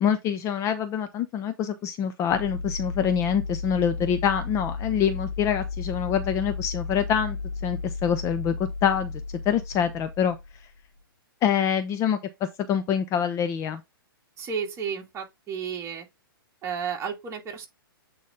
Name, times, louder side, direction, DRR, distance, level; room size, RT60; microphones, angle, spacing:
voice 1, 0.0-7.4 7.6-8.5 8.8-9.1 9.5-10.4 11.4-12.2 12.7-13.8, left 8 dB, 25° left, 0.7 m, -25 dB
sound 1, 2.3-11.0, left 4 dB, 75° left, 2.5 m, -34 dB
voice 2, 14.4-16.1 16.6-17.7, right 7 dB, 20° right, 2.2 m, -32 dB
8.3 x 4.0 x 3.6 m
hypercardioid pair, 120°, 12 cm